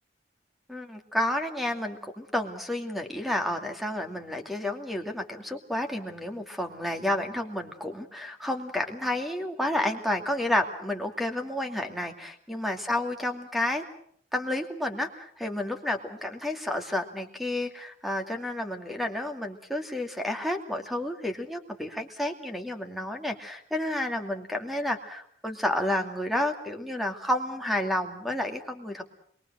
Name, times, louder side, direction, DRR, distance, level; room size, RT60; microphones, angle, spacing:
voice 1, 0.7-13.8 14.3-29.0, left 1 dB, ahead, 5 dB, 2.5 m, -30 dB
27.5 x 22.5 x 6.4 m, 0.63 s
head